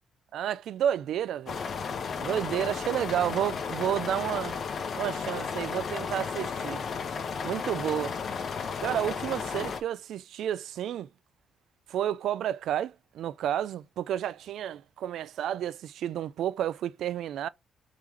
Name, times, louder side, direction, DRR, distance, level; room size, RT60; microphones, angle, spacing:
voice 1, 0.3-1.6 2.2-4.6 5.0-6.8 7.4-8.2 8.8-11.1 11.9-17.5, right 10 dB, 75° right, 0.3 m, -31 dB
sound 1, 1.5-9.8, left 5 dB, 50° left, 0.7 m, -34 dB
3.6 x 3.2 x 3.4 m
cardioid pair, 90°, 0 cm